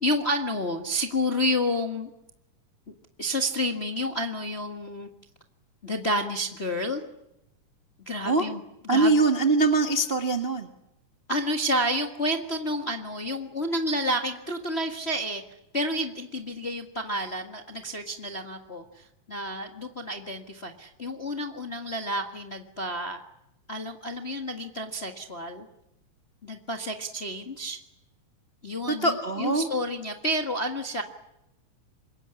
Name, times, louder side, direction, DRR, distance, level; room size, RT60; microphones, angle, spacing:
voice 1, 0.0-2.1 2.9-5.1 5.8-7.0 8.0-8.6 8.9-9.2 11.3-15.4 15.7-23.2 23.7-25.7 26.4-27.8 28.6-31.0, equal, 30° left, 4 dB, 1.1 m, -30 dB
voice 2, 8.9-10.7 28.9-29.7, right 3 dB, 30° right, 5 dB, 1.0 m, -23 dB
26.5 x 22.5 x 9.8 m, 0.87 s
omnidirectional pair, 3.8 m